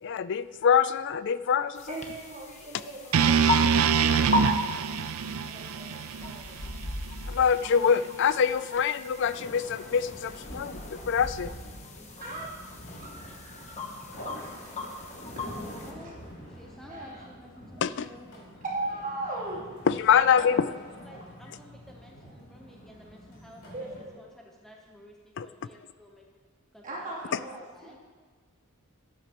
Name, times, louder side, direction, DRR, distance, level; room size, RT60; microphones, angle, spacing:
voice 1, 0.0-1.9 7.3-11.5 17.8-18.1 19.9-20.7 25.4-25.5, left 7 dB, 55° left, 0.4 m, -25 dB
sound 1, 1.8-15.9, left 2 dB, 30° left, 1.1 m, -37 dB
voice 2, 1.9-4.9 5.4-6.7 12.2-12.5 13.0-14.1 14.4-14.7 15.4-15.5 16.0-16.1 16.9-17.3 18.7-19.9 23.7-24.2 26.8-28.0, right 2 dB, 40° right, 3.0 m, -39 dB
sound 2, 3.1-7.3, right 6 dB, 75° right, 0.4 m, -25 dB
sound 3, 9.2-24.0, equal, 90° left, 3.0 m, -46 dB
voice 3, 12.0-12.6 15.6-18.3 20.1-20.6 20.8-23.9 24.2-26.2 26.7-28.0, left 1 dB, ahead, 0.9 m, -50 dB
13.0 x 11.5 x 3.0 m
head